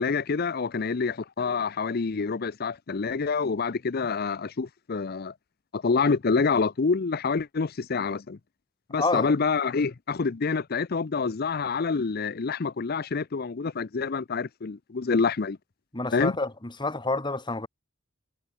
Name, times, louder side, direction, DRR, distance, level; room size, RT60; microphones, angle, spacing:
voice 1, 0.0-5.3 5.7-8.4 8.9-15.6 16.1-16.3, left 4 dB, 50° left, 0.6 m, -27 dB
voice 2, 9.0-9.3 15.9-17.7, left 3 dB, 25° left, 2.2 m, -28 dB
head